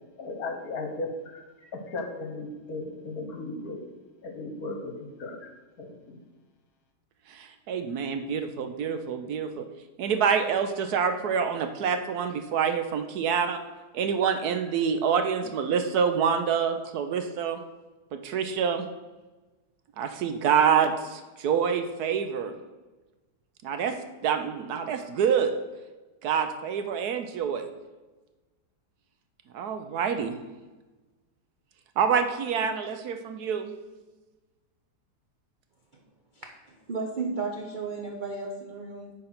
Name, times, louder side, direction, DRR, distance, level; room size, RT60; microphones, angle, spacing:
voice 1, 0.2-1.4 1.7-3.9 4.2-6.2, left 2 dB, 60° left, 4 dB, 1.5 m, -36 dB
voice 2, 7.3-9.6 10.0-13.6 13.9-17.6 18.1-18.9 20.0-22.5 23.6-24.0 24.2-25.5 26.2-27.7 29.5-30.4 32.0-33.7, right 7 dB, 70° right, 8 dB, 1.2 m, -26 dB
voice 3, 36.3-39.1, right 4 dB, 45° right, 2 dB, 0.6 m, -34 dB
9.5 x 3.9 x 5.8 m, 1.2 s
omnidirectional pair, 1.8 m